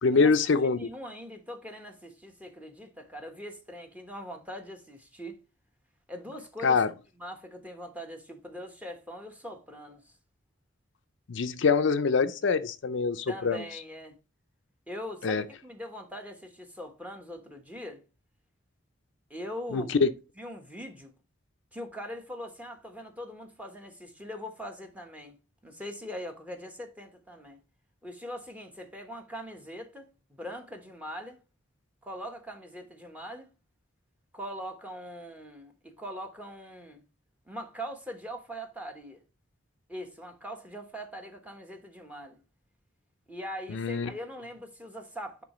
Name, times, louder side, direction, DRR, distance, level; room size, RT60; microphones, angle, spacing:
voice 1, 0.0-0.9 6.6-6.9 11.3-13.6 15.2-15.4 19.7-20.1 43.7-44.1, left 4 dB, 65° left, 0.5 m, -24 dB
voice 2, 0.6-5.4 6.1-6.8 7.1-10.0 13.3-14.2 14.9-18.0 19.3-19.9 20.4-21.1 21.7-25.4 25.6-27.6 28.0-31.4 32.0-33.5 34.3-37.0 37.5-39.2 39.9-42.4 43.3-45.4, equal, 10° right, 1.2 m, -41 dB
9.8 x 3.7 x 3.0 m
head